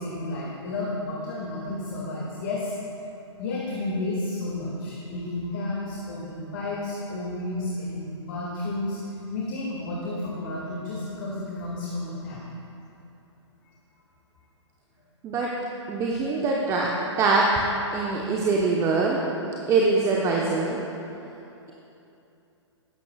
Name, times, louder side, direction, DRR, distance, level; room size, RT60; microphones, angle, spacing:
voice 1, 0.0-2.7 3.4-9.0 9.3-12.4, left 2 dB, 45° left, -4 dB, 1.9 m, -31 dB
voice 2, 15.9-16.9 17.2-17.6 17.9-19.2 19.7-20.8, right 3 dB, 20° right, -2 dB, 0.9 m, -23 dB
19.0 x 9.6 x 2.3 m, 2.8 s
figure-of-eight pair, 115°, 15 cm